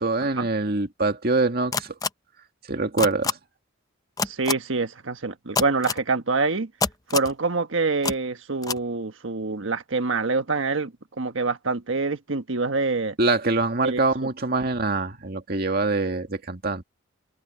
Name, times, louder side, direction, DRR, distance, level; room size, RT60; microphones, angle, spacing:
voice 1, 0.0-1.9 2.7-3.4 13.2-16.8, right 3 dB, 50° right, 2.1 m, -24 dB
sound 1, 1.7-2.1 3.0-3.3 4.2-4.5 5.5-6.0 6.8-7.3 8.0-8.1 8.6-8.8, left 4 dB, 20° left, 0.6 m, -25 dB
voice 2, 4.2-6.7 7.1-13.1 13.8-14.0, right 3 dB, 80° right, 1.3 m, -26 dB
head